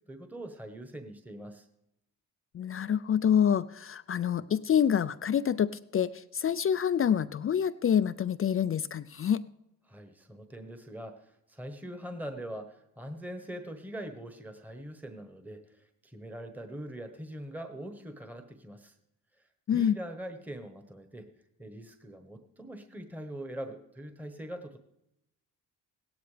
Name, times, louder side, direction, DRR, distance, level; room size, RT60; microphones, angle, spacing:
voice 1, 0.1-1.7 9.9-18.9 19.4-21.3 21.6-24.8, right 1 dB, 5° right, 6 dB, 1.2 m, -42 dB
voice 2, 2.5-9.4 19.7-20.0, left 8 dB, 35° left, 14 dB, 0.4 m, -27 dB
16.5 x 13.0 x 3.4 m, 0.85 s
cardioid pair, 75°, 39 cm